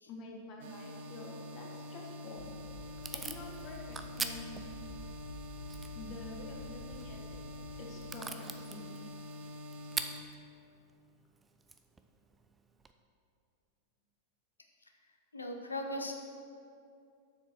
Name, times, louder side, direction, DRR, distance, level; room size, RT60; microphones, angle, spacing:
voice 1, 0.0-2.5 3.1-4.7 5.9-7.4 7.8-8.9, left 3 dB, 40° left, -1 dB, 1.5 m, -48 dB
sound 1, 0.6-10.2, left 1 dB, 55° right, 0.9 m, -46 dB
Packing tape duct tape / Tearing, 2.1-12.9, right 4 dB, 15° right, 0.5 m, -46 dB
sound 2, 2.4-7.8, left 1 dB, 55° left, 1.2 m, -50 dB
voice 2, 15.3-16.1, left 1 dB, 80° left, 4 dB, 0.9 m, -38 dB
7.3 x 6.4 x 6.2 m, 2.5 s
figure-of-eight pair, 90°, 0 cm